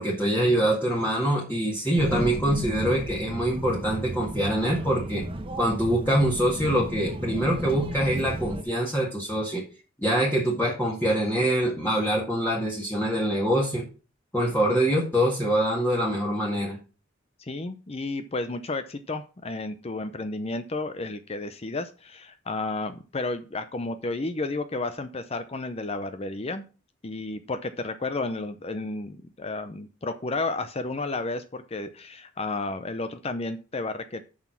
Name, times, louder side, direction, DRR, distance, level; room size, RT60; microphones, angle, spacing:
voice 1, 0.0-5.2 5.6-9.6 10.0-13.8 14.3-16.8, right 1 dB, 10° left, -4 dB, 1.8 m, -24 dB
sound 1, 2.0-8.6, right 1 dB, 25° right, 1.2 m, -34 dB
voice 2, 17.4-26.7 27.0-34.2, left 2 dB, 30° left, 10 dB, 0.6 m, -32 dB
7.4 x 6.2 x 5.9 m, 0.34 s
head